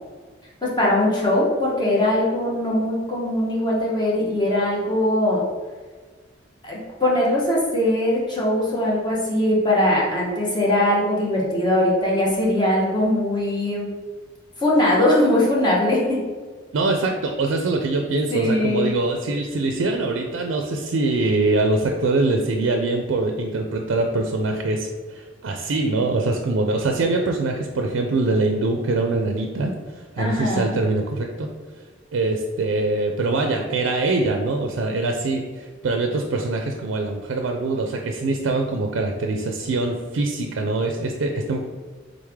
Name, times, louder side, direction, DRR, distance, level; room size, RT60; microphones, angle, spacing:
voice 1, 0.6-5.4 6.6-13.9 14.6-16.2 18.3-18.9 30.2-30.8, left 1 dB, 25° left, -5 dB, 0.9 m, -21 dB
voice 2, 16.7-31.5 32.1-41.6, right 2 dB, 75° right, 3 dB, 0.4 m, -23 dB
3.8 x 3.2 x 3.5 m, 1.4 s
head